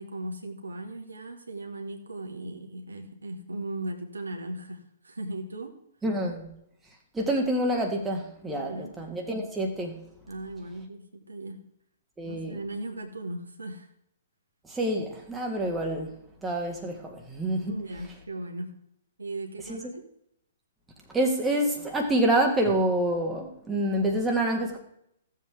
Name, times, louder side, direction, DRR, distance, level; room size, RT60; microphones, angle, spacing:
voice 1, 0.0-5.7 8.5-9.0 10.3-11.6 12.3-13.9 17.7-18.7 19.2-20.0, right 2 dB, 80° right, 3 dB, 1.6 m, -37 dB
voice 2, 6.0-6.5 7.1-10.0 12.2-12.6 14.6-16.1 16.4-17.8 19.7-19.9 21.1-24.8, right 1 dB, 10° right, 0 dB, 1.7 m, -27 dB
16.0 x 7.5 x 3.5 m, 0.74 s
figure-of-eight pair, 115°, 0 cm